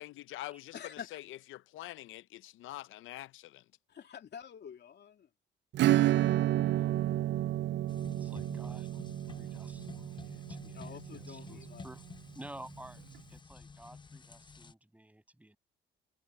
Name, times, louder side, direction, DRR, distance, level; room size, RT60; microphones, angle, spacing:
voice 1, 0.0-3.6, left 15 dB, 80° left, 0.6 m, -45 dB
voice 2, 0.7-1.2 3.9-5.3 10.7-11.8, left 8 dB, 60° left, 3.0 m, -47 dB
Acoustic guitar / Strum, 5.7-12.0, right 14 dB, 65° right, 0.5 m, -31 dB
sound 1, 7.9-14.7, left 5 dB, 25° left, 0.7 m, -50 dB
voice 3, 8.2-12.0 12.3-13.0 13.3-15.6, right 1 dB, 5° right, 7.3 m, -52 dB
cardioid pair, 90°, 20 cm